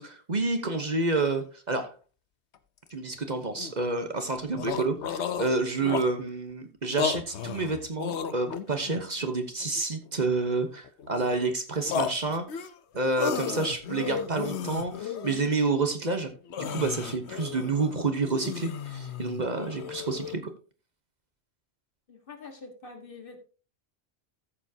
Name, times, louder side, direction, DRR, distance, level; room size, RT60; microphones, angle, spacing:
voice 1, 0.0-1.9 2.9-16.3 16.6-20.5, right 3 dB, 45° right, 7 dB, 1.1 m, -29 dB
sound 1, 2.5-2.6 2.9-3.0 3.5-3.8 4.2-4.3 4.5-6.3 6.9-9.0 9.6-10.4 10.8-11.5 11.9-15.5 15.9-16.0 16.3-20.4, left 7 dB, 90° left, 1.1 m, -34 dB
voice 2, 22.1-23.5, left 4 dB, 55° left, 5 dB, 1.8 m, -45 dB
14.0 x 7.1 x 2.8 m, 0.35 s
omnidirectional pair, 1.1 m